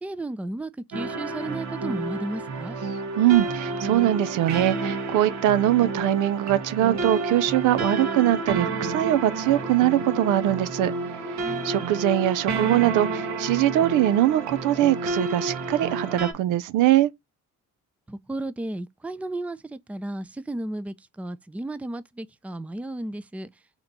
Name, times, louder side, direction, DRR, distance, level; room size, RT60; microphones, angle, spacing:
voice 1, 0.0-2.8 11.4-11.9 18.1-23.5, right 2 dB, 5° right, 0.4 m, -34 dB
sound 1, 0.9-16.3, right 3 dB, 65° right, 1.3 m, -30 dB
voice 2, 3.2-10.9 11.3-11.4 11.6-17.1, right 13 dB, 90° right, 0.5 m, -22 dB
4.3 x 2.9 x 3.8 m
cardioid pair, 90°, 30 cm